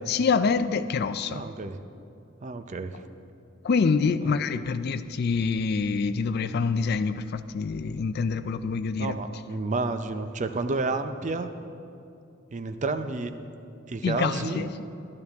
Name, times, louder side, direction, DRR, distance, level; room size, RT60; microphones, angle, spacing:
voice 1, 0.1-1.4 3.6-9.1 14.0-14.7, left 5 dB, 55° left, 12 dB, 0.4 m, -26 dB
voice 2, 1.3-1.8 2.4-3.0 9.0-11.5 12.5-13.3 13.9-14.7, right 3 dB, 40° right, 9 dB, 0.5 m, -30 dB
13.0 x 12.5 x 3.5 m, 2.6 s
head